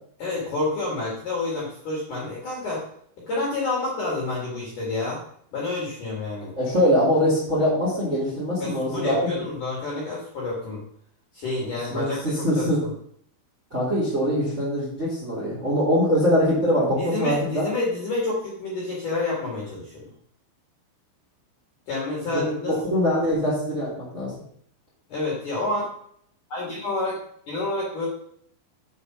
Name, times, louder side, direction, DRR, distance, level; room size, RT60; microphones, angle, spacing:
voice 1, 0.2-2.8 3.3-5.2 5.5-6.5 8.6-10.8 11.3-12.7 16.9-20.1 21.9-22.8 25.1-25.8 26.5-27.2 27.5-28.1, left 2 dB, 55° left, -5 dB, 2.5 m, -28 dB
voice 2, 6.6-9.2 11.9-12.8 13.7-17.6 22.7-24.3, equal, 20° right, -7 dB, 1.9 m, -23 dB
7.1 x 5.0 x 5.8 m, 0.65 s
omnidirectional pair, 5.9 m